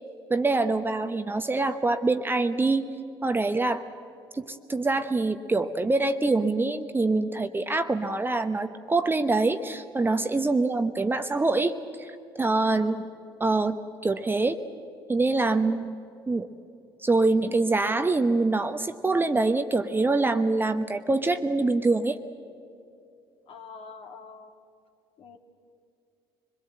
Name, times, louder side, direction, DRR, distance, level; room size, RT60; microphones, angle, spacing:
voice 1, 0.3-2.9 3.2-3.8 4.3-11.7 12.0-13.0 13.4-14.6 15.1-16.0 16.3-16.5 17.0-22.2, right 3 dB, 15° right, 9 dB, 0.9 m, -25 dB
voice 2, 23.5-24.5 25.2-25.4, left 5 dB, 45° left, 5 dB, 2.0 m, -46 dB
25.0 x 21.5 x 7.7 m, 2.6 s
figure-of-eight pair, 60°, 13 cm